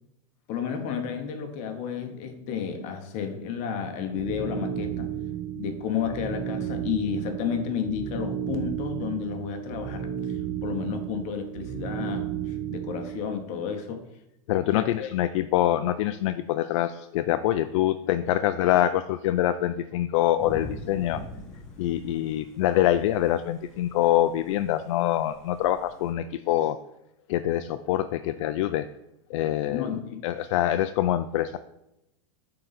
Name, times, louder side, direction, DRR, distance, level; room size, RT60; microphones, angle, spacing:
voice 1, 0.5-5.1 5.5-14.0 14.6-15.1 29.7-30.3, left 7 dB, 45° left, 6 dB, 0.9 m, -32 dB
sound 1, 4.1-13.3, right 9 dB, 50° right, 0.9 m, -33 dB
voice 2, 14.5-21.2 21.8-26.8 27.3-28.9 29.3-31.6, left 13 dB, 65° left, 10 dB, 0.4 m, -25 dB
Thunder / Rain, 20.4-26.1, left 1 dB, 5° left, 1.9 m, -44 dB
9.0 x 3.8 x 4.1 m, 0.86 s
supercardioid pair, 140°, 17 cm